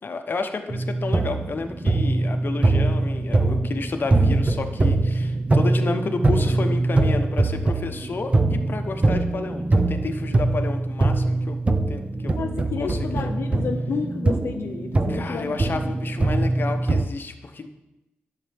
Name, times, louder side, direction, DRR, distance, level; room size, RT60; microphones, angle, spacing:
voice 1, 0.0-11.6 11.9-12.4 12.8-13.3 15.1-17.7, left 4 dB, 55° left, 6 dB, 0.8 m, -31 dB
sound 1, 0.7-17.0, right 2 dB, 30° right, 0.6 m, -23 dB
voice 2, 12.4-15.6, left 6 dB, 85° left, 5 dB, 0.5 m, -31 dB
10.5 x 6.6 x 3.4 m, 0.97 s
cardioid pair, 75°, 4 cm